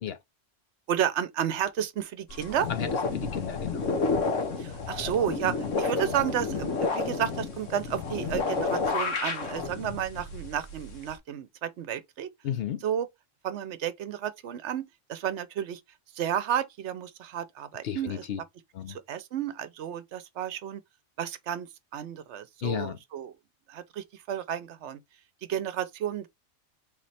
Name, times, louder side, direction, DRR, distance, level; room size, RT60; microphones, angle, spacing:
voice 1, 0.9-2.7 4.6-12.3 12.8-13.1 13.4-15.8 16.1-18.2 18.9-20.8 21.2-23.3 23.7-25.0 25.5-26.3, right 9 dB, 70° right, 0.9 m, -32 dB
sound 1, 2.3-11.2, left 4 dB, 85° left, 1.4 m, -31 dB
voice 2, 3.1-3.9 12.4-12.8 17.8-18.4 18.7-19.0 22.6-23.0, left 9 dB, 65° left, 0.7 m, -33 dB
3.8 x 3.1 x 4.1 m
omnidirectional pair, 1.2 m